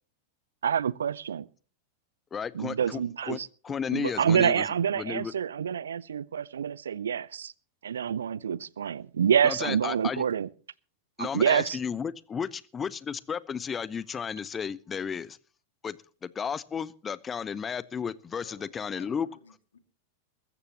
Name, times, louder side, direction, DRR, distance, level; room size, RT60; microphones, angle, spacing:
voice 1, 0.6-1.5 2.5-3.5 3.9-7.5 7.8-10.5 11.2-11.8, right 8 dB, 65° right, 0.6 m, -27 dB
voice 2, 2.3-3.0 3.3-3.4 3.6-4.7 4.9-5.3 9.4-10.2 11.2-15.4 15.8-19.3, left 7 dB, 20° left, 0.7 m, -33 dB
voice 3, 18.4-19.8, left 5 dB, 70° left, 2.0 m, -55 dB
22.0 x 14.0 x 3.0 m
figure-of-eight pair, 90°, 0 cm